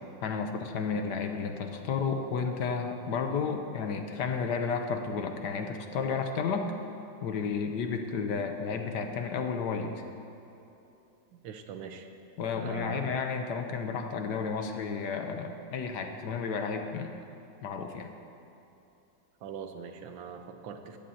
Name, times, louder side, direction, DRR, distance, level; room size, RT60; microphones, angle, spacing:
voice 1, 0.2-6.7 7.2-9.9 12.4-17.1 17.6-18.1, left 5 dB, 70° left, 5 dB, 1.3 m, -32 dB
voice 2, 11.3-12.1 12.6-13.2 19.4-21.0, right 7 dB, 85° right, 6 dB, 1.6 m, -42 dB
18.0 x 14.0 x 2.8 m, 2.9 s
omnidirectional pair, 2.1 m